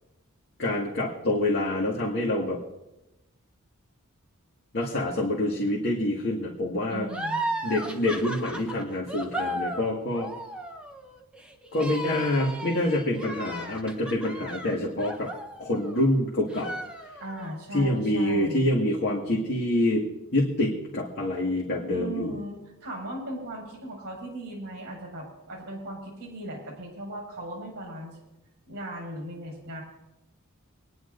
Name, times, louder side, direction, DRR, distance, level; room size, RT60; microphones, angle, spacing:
voice 1, 0.6-2.6 4.7-7.1 7.6-10.3 11.7-15.3 15.6-16.7 17.7-20.1 20.3-22.3, left 1 dB, 50° left, -4 dB, 2.0 m, -26 dB
voice 2, 6.9-7.5 17.2-18.7 21.9-28.2 28.7-29.8, right 1 dB, 50° right, 1 dB, 5.9 m, -38 dB
sound 1, 7.1-16.1 16.5-17.5, right 1 dB, 5° right, 1.1 m, -35 dB
25.5 x 10.5 x 2.7 m, 0.94 s
head